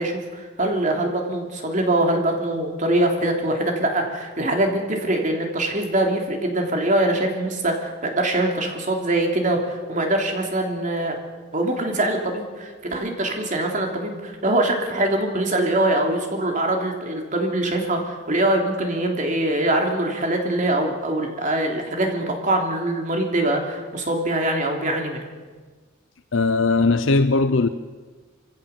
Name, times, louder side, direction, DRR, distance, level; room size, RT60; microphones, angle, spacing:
voice 1, 0.0-11.1 11.5-25.2, right 1 dB, 40° right, 3.2 m, -23 dB
voice 2, 26.3-27.7, left 3 dB, 65° left, 0.7 m, -19 dB
25.5 x 16.5 x 7.2 m
head